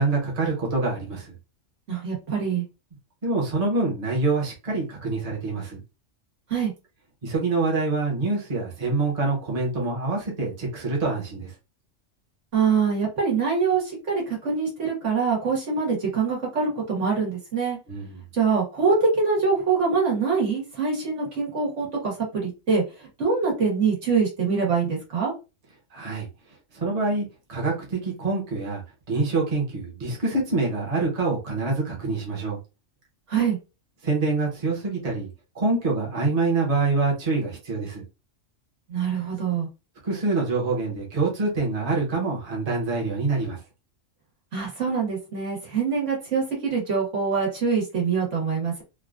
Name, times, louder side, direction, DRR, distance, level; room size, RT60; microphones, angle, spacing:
voice 1, 0.0-1.3 3.2-5.8 7.2-11.5 17.9-18.2 25.9-26.3 26.7-28.8 29.1-32.6 34.0-35.3 35.5-38.0 40.0-43.6, right 3 dB, 35° right, 1.0 m, -26 dB
voice 2, 1.9-2.6 6.5-6.7 12.5-17.8 18.3-25.3 33.3-33.6 38.9-39.7 44.5-48.8, right 5 dB, 70° right, 1.6 m, -24 dB
3.4 x 2.3 x 2.4 m
omnidirectional pair, 1.3 m